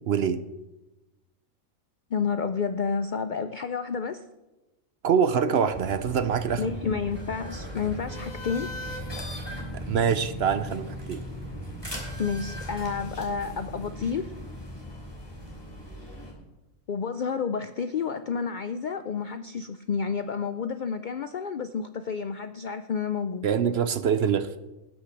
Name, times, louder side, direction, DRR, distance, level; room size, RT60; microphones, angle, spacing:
voice 1, 0.1-0.4 5.0-6.7 9.7-11.2 23.4-24.5, right 7 dB, 60° right, 12 dB, 0.7 m, -25 dB
voice 2, 2.1-4.3 6.5-8.7 12.2-14.3 16.9-23.5, left 6 dB, 70° left, 10 dB, 0.4 m, -30 dB
sound 1, 5.7-16.3, equal, 15° left, 3.3 m, -38 dB
19.5 x 6.5 x 5.8 m, 1.1 s
omnidirectional pair, 1.4 m